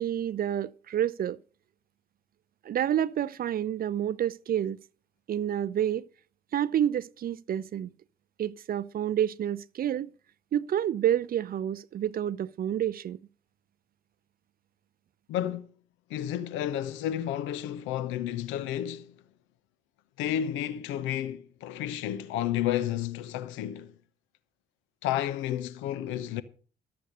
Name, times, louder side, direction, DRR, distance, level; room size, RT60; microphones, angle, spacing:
voice 1, 0.0-1.4 2.6-4.8 5.3-6.1 6.5-7.9 8.4-10.1 10.5-13.2, right 10 dB, 45° right, 0.5 m, -29 dB
voice 2, 15.3-15.7 16.1-19.1 20.2-23.9 25.0-26.4, left 11 dB, 70° left, 0.8 m, -31 dB
12.0 x 7.9 x 6.6 m
hypercardioid pair, 45°, 21 cm